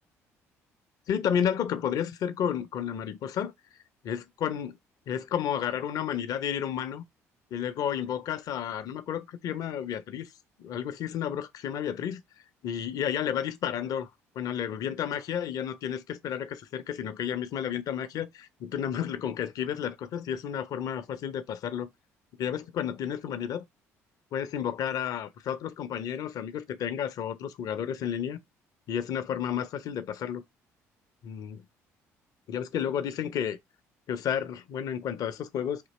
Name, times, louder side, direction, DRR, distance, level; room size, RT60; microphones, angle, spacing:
voice 1, 1.1-3.5 4.0-4.8 5.1-7.0 7.5-10.3 10.6-12.2 12.6-14.1 14.4-21.9 22.4-23.6 24.3-28.4 28.9-30.4 31.2-31.6 32.5-33.6 34.1-35.9, left 9 dB, 50° left, 0.5 m, -31 dB
3.7 x 2.9 x 4.0 m
figure-of-eight pair, 50°, 8 cm